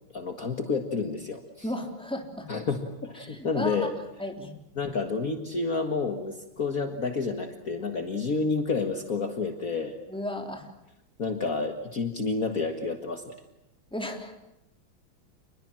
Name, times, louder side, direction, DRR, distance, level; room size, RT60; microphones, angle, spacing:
voice 1, 0.1-1.4 2.5-3.9 4.8-10.0 11.2-13.4, left 4 dB, 45° left, 5 dB, 2.1 m, -29 dB
voice 2, 1.6-2.5 3.2-3.9 4.2-4.6 10.1-10.7 13.9-14.3, left 1 dB, ahead, 3 dB, 3.5 m, -34 dB
29.0 x 22.0 x 7.6 m, 0.86 s
omnidirectional pair, 2.1 m